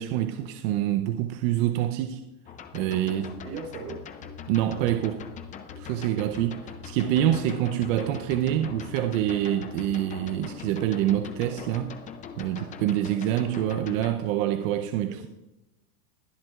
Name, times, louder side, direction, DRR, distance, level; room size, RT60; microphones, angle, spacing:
voice 1, 0.0-2.2 2.7-3.3 4.5-5.3 5.8-12.0 12.4-15.3, right 12 dB, 55° right, 0.8 m, -26 dB
sound 1, 2.5-14.1, left 7 dB, 15° left, 0.4 m, -42 dB
voice 2, 3.1-4.0 15.1-15.3, right 5 dB, 90° right, 4.1 m, -39 dB
21.5 x 7.7 x 2.4 m
supercardioid pair, 135°, 46 cm